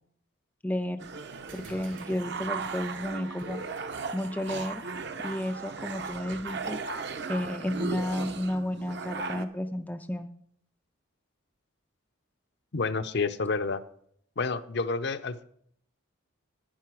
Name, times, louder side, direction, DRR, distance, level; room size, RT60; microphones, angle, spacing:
voice 1, 0.6-1.1 1.5-3.6 4.1-4.8 5.2-6.8 7.3-10.3, left 1 dB, 10° left, 7 dB, 0.3 m, -32 dB
sound 1, 1.0-9.5, right 4 dB, 55° right, 0.8 m, -37 dB
sound 2, 1.5-6.4, right 3 dB, 75° right, 3.8 m, -56 dB
voice 2, 12.7-13.8 14.4-15.4, left 4 dB, 55° left, 11 dB, 0.6 m, -29 dB
10.5 x 9.9 x 4.7 m, 0.65 s
head